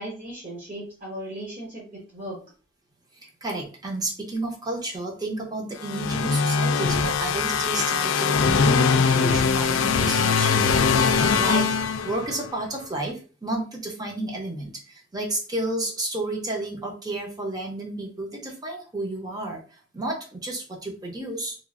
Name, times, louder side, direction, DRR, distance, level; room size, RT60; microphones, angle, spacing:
voice 1, 0.0-2.4, right 1 dB, 45° right, -5 dB, 0.9 m, -37 dB
voice 2, 3.1-11.7 12.0-21.6, right 2 dB, 20° right, 1 dB, 0.7 m, -31 dB
sound 1, 5.8-12.5, left 5 dB, 90° left, 0.4 m, -22 dB
3.0 x 2.4 x 2.4 m, 0.37 s
head